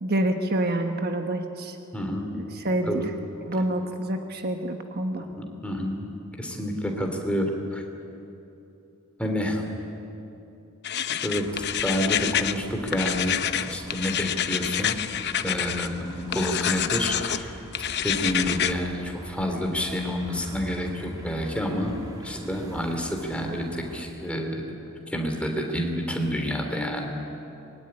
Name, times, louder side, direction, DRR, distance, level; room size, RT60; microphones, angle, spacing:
voice 1, 0.0-1.8 2.3-3.0 3.4-5.3, right 1 dB, 45° right, 5 dB, 1.3 m, -27 dB
voice 2, 1.9-2.3 2.9-3.1 5.2-6.1 6.4-7.8 9.2-9.7 11.2-15.0 15.4-17.6 18.0-22.0 22.2-24.6 25.1-27.1, equal, 5° left, 2 dB, 3.2 m, -29 dB
sound 1, 10.8-12.6 12.9-15.9 16.3-17.4 17.7-18.7, left 10 dB, 50° left, 0.8 m, -27 dB
sound 2, 11.4-24.0, equal, 15° right, 3.0 m, -43 dB
24.5 x 21.5 x 9.9 m, 2.9 s
head